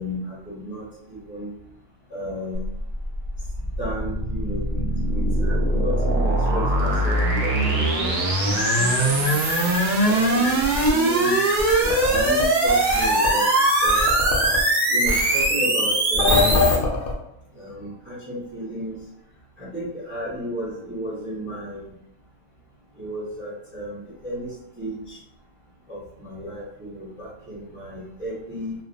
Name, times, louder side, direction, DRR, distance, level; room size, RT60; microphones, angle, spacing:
voice 1, 0.0-1.5 2.1-2.7 3.8-9.4 10.0-10.6 10.8-11.4 11.8-13.5 13.8-14.0 14.9-16.5 17.5-19.0 19.6-21.9 23.0-25.2 25.9-28.8, equal, 15° right, -7 dB, 0.4 m, -33 dB
sound 1, 2.5-16.7, right 2 dB, 85° right, 0.4 m, -21 dB
sound 2, 6.8-10.9 11.6-13.3 13.9-14.6 15.1-15.4 16.1-17.1, left 3 dB, 60° left, 0.6 m, -25 dB
sound 3, 7.0-7.3 8.5-10.5 11.2-12.3 13.0-14.1, left 3 dB, 80° left, 1.0 m, -28 dB
2.4 x 2.0 x 2.5 m, 0.81 s
omnidirectional pair, 1.4 m